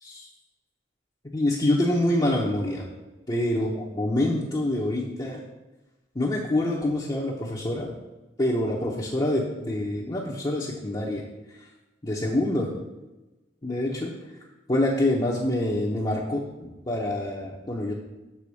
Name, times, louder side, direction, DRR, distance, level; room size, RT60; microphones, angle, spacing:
voice 1, 1.3-2.8 3.3-5.4 6.1-7.9 8.4-11.2 11.6-11.7 12.0-12.7 13.6-14.1 14.7-17.9, left 1 dB, 25° left, -5 dB, 0.8 m, -26 dB
7.0 x 3.9 x 6.3 m, 1.1 s
head